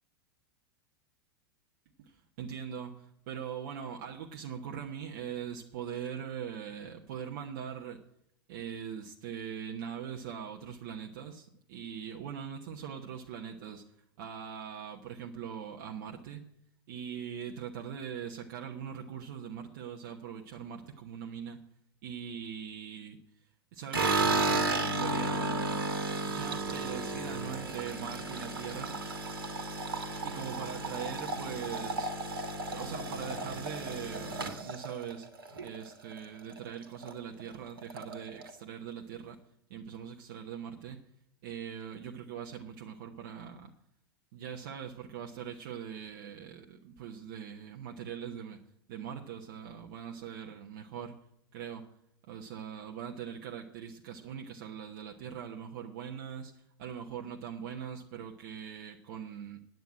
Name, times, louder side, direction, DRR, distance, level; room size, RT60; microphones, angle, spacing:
voice 1, 2.0-8.0 8.5-13.8 14.2-16.4 16.9-21.6 22.0-23.2 23.7-25.9 26.3-29.1 30.2-32.1 32.7-35.3 35.6-39.4 39.7-41.0 41.4-43.7 44.3-48.6 48.9-51.2 51.5-51.9 52.2-59.6, right 8 dB, 50° right, 2 dB, 1.1 m, -41 dB
sound 1, 23.9-36.2 36.5-37.1 37.4-37.5 37.8-38.5, right 2 dB, 70° right, 1.7 m, -33 dB
9.3 x 9.2 x 8.9 m, 0.75 s
figure-of-eight pair, 90°, 12 cm